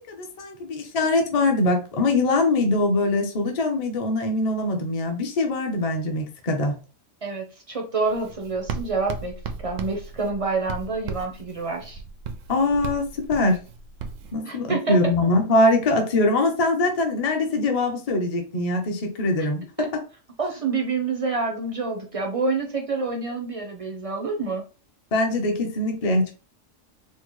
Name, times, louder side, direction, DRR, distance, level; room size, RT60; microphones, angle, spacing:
voice 1, 0.1-6.8 12.5-13.6 14.3-20.0 25.1-26.3, left 2 dB, 40° left, 0.6 m, -23 dB
voice 2, 7.2-9.3 9.6-12.0 14.4-15.1 19.8-19.9 20.4-24.6, right 4 dB, 45° right, 0.4 m, -27 dB
Writing, 8.1-14.3, right 5 dB, 80° right, 0.9 m, -36 dB
4.4 x 2.0 x 3.0 m
omnidirectional pair, 1.3 m